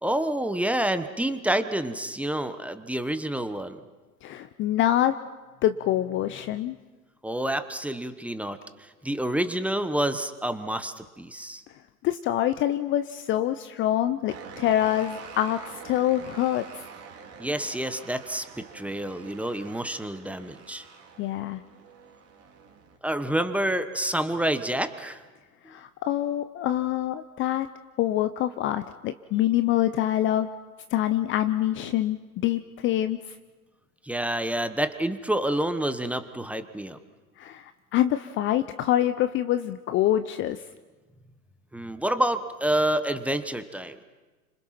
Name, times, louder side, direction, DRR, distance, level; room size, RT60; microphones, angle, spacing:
voice 1, 0.0-3.8 7.2-11.6 17.4-20.8 23.0-25.2 34.0-37.0 41.7-44.0, right 1 dB, 5° right, 10 dB, 1.1 m, -28 dB
voice 2, 4.2-5.1 5.6-6.8 12.0-16.6 21.2-21.6 25.7-27.7 28.0-30.5 30.9-33.2 37.4-40.6, left 12 dB, 25° left, 11 dB, 0.7 m, -25 dB
sound 1, 14.3-23.0, right 6 dB, 30° right, 3.8 m, -46 dB
30.0 x 26.0 x 5.9 m, 1.2 s
hypercardioid pair, 110°, 47 cm